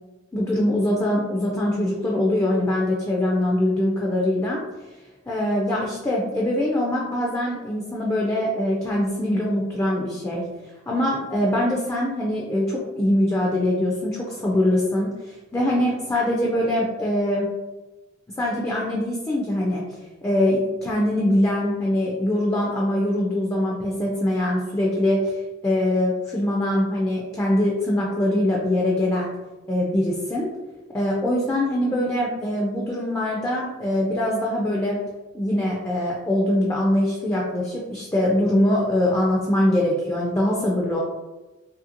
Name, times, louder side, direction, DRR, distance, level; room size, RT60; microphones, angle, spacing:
voice 1, 0.3-4.6 5.3-10.4 10.9-17.5 18.4-19.8 20.2-25.2 25.6-29.3 29.7-30.5 30.9-35.0 35.3-41.0, left 1 dB, 15° left, -3 dB, 0.3 m, -23 dB
2.7 x 2.5 x 2.7 m, 1.1 s
head